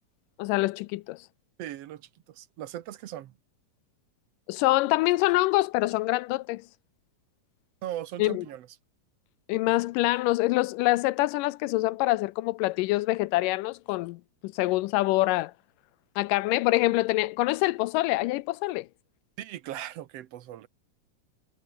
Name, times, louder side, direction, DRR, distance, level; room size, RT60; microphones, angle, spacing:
voice 1, 0.4-1.2 4.5-6.6 8.2-8.5 9.5-15.5 16.2-18.9, left 19 dB, 80° left, 2.1 m, -25 dB
voice 2, 1.6-3.3 7.8-8.7 19.4-20.7, right 12 dB, 70° right, 1.6 m, -38 dB
omnidirectional pair, 3.9 m